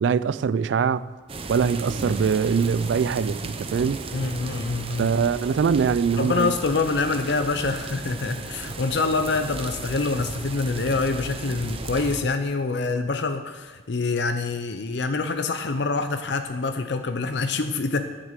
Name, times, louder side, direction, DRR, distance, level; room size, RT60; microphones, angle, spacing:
voice 1, 0.0-1.1 1.5-4.0 5.0-6.5, right 6 dB, 75° right, 0.3 m, -23 dB
sound 1, 1.3-12.2, right 3 dB, 30° right, 0.7 m, -35 dB
voice 2, 4.1-5.1 6.2-18.0, left 3 dB, 65° left, 0.6 m, -26 dB
10.5 x 6.7 x 7.5 m
head